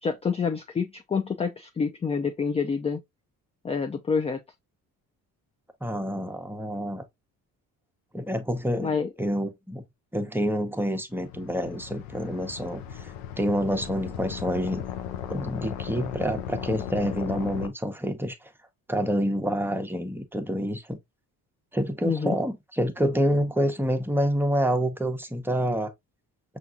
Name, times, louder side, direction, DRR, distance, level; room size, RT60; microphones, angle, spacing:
voice 1, 0.0-3.0 3.6-4.4 8.8-9.1 22.0-22.4, left 5 dB, 15° left, 0.3 m, -27 dB
voice 2, 5.8-7.0 8.1-8.9 9.2-9.8 10.1-14.8 15.3-18.3 18.9-21.0 21.7-25.9, equal, 5° right, 0.7 m, -27 dB
sound 1, 11.1-17.7, left 9 dB, 85° left, 0.6 m, -36 dB
5.7 x 2.5 x 2.4 m
hypercardioid pair, 50°, 44 cm